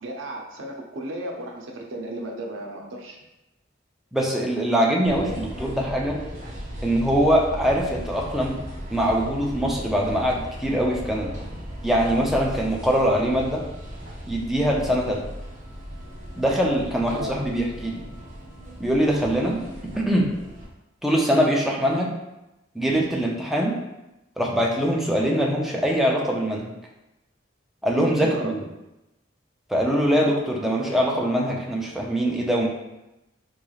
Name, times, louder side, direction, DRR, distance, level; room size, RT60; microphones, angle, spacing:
voice 1, 0.0-3.2 17.2-17.3 28.2-28.7, right 1 dB, 90° right, 0 dB, 0.6 m, -34 dB
voice 2, 4.1-6.2 6.8-8.6 8.9-11.3 11.8-13.6 14.3-15.2 16.4-18.1 18.8-19.6 20.0-20.3 21.0-22.1 22.7-23.8 24.4-26.7 27.8-28.6 29.7-32.7, equal, ahead, -2 dB, 0.5 m, -23 dB
sound 1, 5.0-20.7, equal, 40° right, 0.9 m, -37 dB
3.8 x 3.1 x 2.3 m, 0.95 s
head